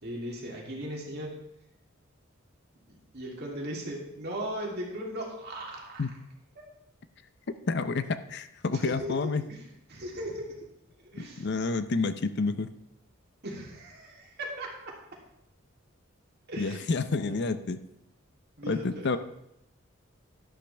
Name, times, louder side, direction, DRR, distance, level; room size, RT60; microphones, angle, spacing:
voice 1, 0.0-1.3 2.9-6.1 6.6-6.7 8.8-10.5 11.1-11.5 13.4-14.9 16.5-17.7 18.6-19.1, right 1 dB, 50° right, -2 dB, 2.9 m, -38 dB
voice 2, 7.7-9.4 11.2-12.7 16.6-17.8 18.6-19.2, left 3 dB, 55° left, 11 dB, 0.6 m, -29 dB
12.0 x 11.5 x 3.4 m, 0.80 s
head